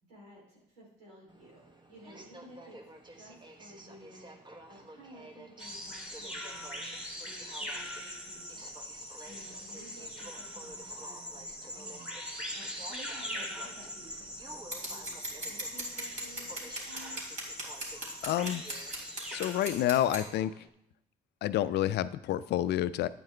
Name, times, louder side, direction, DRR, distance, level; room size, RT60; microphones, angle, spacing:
voice 1, 0.0-2.8 3.1-4.3 4.7-17.2, right 1 dB, 90° right, -4 dB, 3.2 m, -54 dB
Aircraft, 1.3-20.7, right 1 dB, 25° right, 1.2 m, -52 dB
sound 1, 5.6-19.9, equal, 5° right, 2.5 m, -42 dB
Scissors, 14.7-20.2, right 1 dB, 40° right, 3.5 m, -39 dB
voice 2, 18.2-18.6 19.3-20.5 21.4-23.1, left 12 dB, 65° left, 15 dB, 0.5 m, -29 dB
9.0 x 8.6 x 3.3 m, 0.79 s
hypercardioid pair, 60°, 19 cm